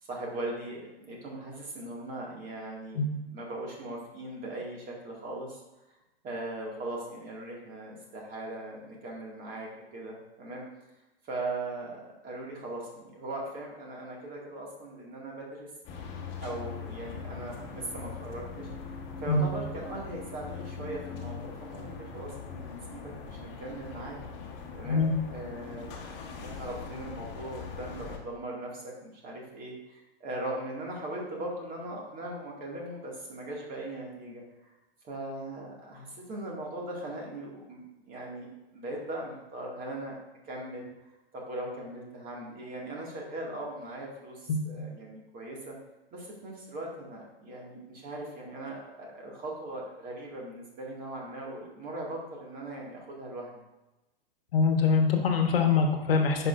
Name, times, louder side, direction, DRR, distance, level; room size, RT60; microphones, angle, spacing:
voice 1, 0.1-5.6 6.2-10.6 11.2-15.7 16.4-18.7 19.2-24.2 24.8-27.9 28.2-34.7 35.0-40.1 40.5-40.9 41.3-45.7 46.1-53.6, right 1 dB, 30° right, -2 dB, 2.2 m, -39 dB
Ambient Ciutat Nit Plasa Mons, 15.8-28.2, left 5 dB, 35° left, 1.3 m, -41 dB
voice 2, 44.5-44.9 54.5-56.5, left 4 dB, 70° left, 4 dB, 1.2 m, -24 dB
10.0 x 5.3 x 2.6 m, 1.0 s
hypercardioid pair, 120°, 30 cm